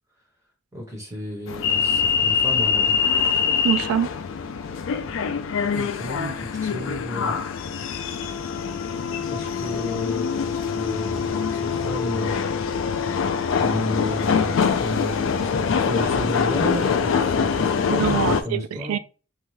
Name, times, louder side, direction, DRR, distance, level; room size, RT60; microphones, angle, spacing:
voice 1, 0.7-2.9 5.7-7.4 9.3-12.3 13.6-19.0, equal, 15° right, 1.0 m, -32 dB
sound 1, 1.5-18.4, left 6 dB, 65° left, 0.3 m, -24 dB
voice 2, 3.6-4.1 17.9-19.0, right 9 dB, 85° right, 0.3 m, -24 dB
2.7 x 2.2 x 3.2 m
head